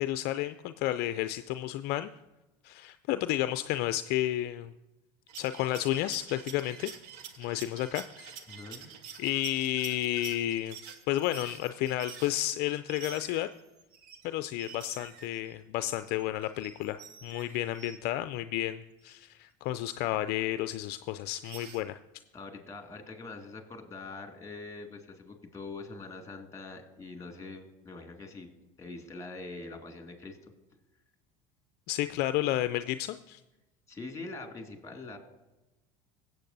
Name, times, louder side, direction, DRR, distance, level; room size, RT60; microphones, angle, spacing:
voice 1, 0.0-2.1 2.6-4.7 5.4-6.9 7.4-8.4 9.2-10.8 11.1-13.5 14.2-22.0 31.9-33.4, left 14 dB, 60° left, 11 dB, 0.4 m, -31 dB
sound 1, 5.3-14.3 14.6-18.0 19.1-19.2 19.9-20.0 21.2-21.8, right 7 dB, 75° right, 1.1 m, -48 dB
voice 2, 8.5-8.9 17.4-17.5 22.3-28.5 28.8-30.4 33.9-35.2, left 3 dB, 15° left, 4 dB, 2.2 m, -43 dB
16.0 x 7.9 x 2.6 m, 1.0 s
hypercardioid pair, 80°, 19 cm